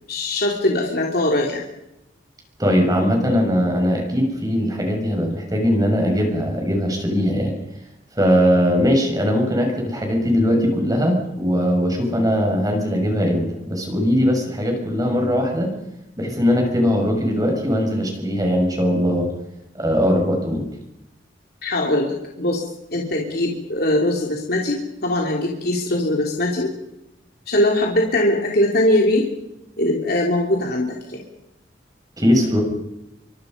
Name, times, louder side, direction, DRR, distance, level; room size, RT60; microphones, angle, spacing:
voice 1, 0.1-1.6 21.6-22.6 22.9-26.7 27.5-29.3 29.8-31.2, left 1 dB, 55° left, -1 dB, 3.6 m, -21 dB
voice 2, 2.6-7.6 8.2-15.7 16.2-19.3 19.7-20.7 32.2-32.6, equal, 20° right, 2 dB, 6.5 m, -20 dB
29.0 x 24.5 x 5.5 m, 0.90 s
head